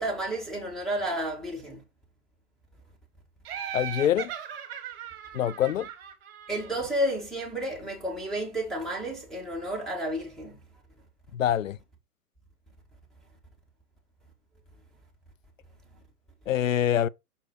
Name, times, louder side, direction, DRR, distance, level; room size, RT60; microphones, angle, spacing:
voice 1, 0.0-1.8 6.5-10.6, right 1 dB, ahead, 1.7 m, -31 dB
Laughter, 3.4-7.1, right 9 dB, 40° right, 1.4 m, -38 dB
voice 2, 3.7-4.3 5.3-5.9 11.3-11.8 16.5-17.1, left 11 dB, 60° left, 0.5 m, -25 dB
5.9 x 4.6 x 3.8 m
figure-of-eight pair, 120°, 46 cm